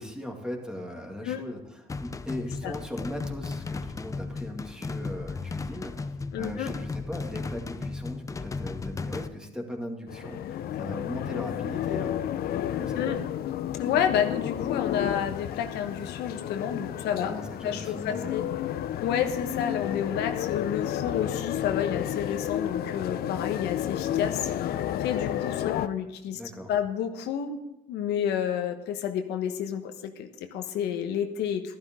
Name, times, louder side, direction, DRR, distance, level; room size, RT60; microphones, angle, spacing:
voice 1, 0.0-12.2 12.7-13.2 17.1-18.5 26.3-26.7, left 1 dB, 5° right, 2 dB, 2.3 m, -38 dB
sound 1, 1.9-9.3, left 4 dB, 20° left, 0.6 m, -35 dB
voice 2, 6.3-6.7 13.0-13.2 13.8-17.3 17.6-18.4 19.0-26.4 26.7-27.6 27.9-31.8, left 9 dB, 80° left, 6 dB, 1.2 m, -30 dB
sound 2, 10.1-25.9, left 11 dB, 65° left, 0.7 m, -31 dB
12.5 x 12.0 x 3.8 m, 1.0 s
cardioid pair, 110°, 17 cm